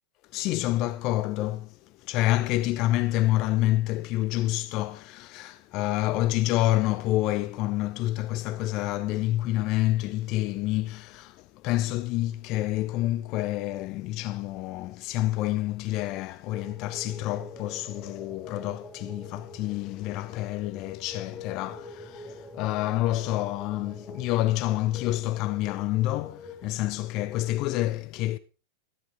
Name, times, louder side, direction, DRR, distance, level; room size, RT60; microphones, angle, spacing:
voice 1, 0.3-28.4, left 16 dB, 40° left, 0.5 m, -28 dB
sound 1, 16.5-26.6, left 3 dB, 5° right, 1.5 m, -45 dB
13.0 x 10.5 x 3.7 m
figure-of-eight pair, 90°, 0 cm